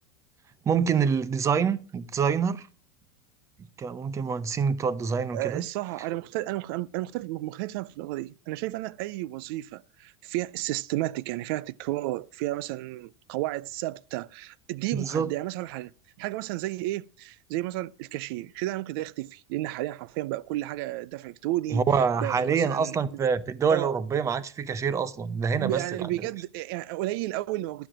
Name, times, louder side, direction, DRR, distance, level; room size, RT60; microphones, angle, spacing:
voice 1, 0.7-2.7 3.8-5.6 14.9-15.3 21.7-26.1, right 6 dB, 25° right, 0.8 m, -26 dB
voice 2, 5.3-15.9 16.2-21.9 22.2-23.2 23.7-23.9 25.6-27.9, right 17 dB, 65° right, 0.5 m, -32 dB
11.5 x 7.5 x 6.1 m
supercardioid pair, 125°, 13 cm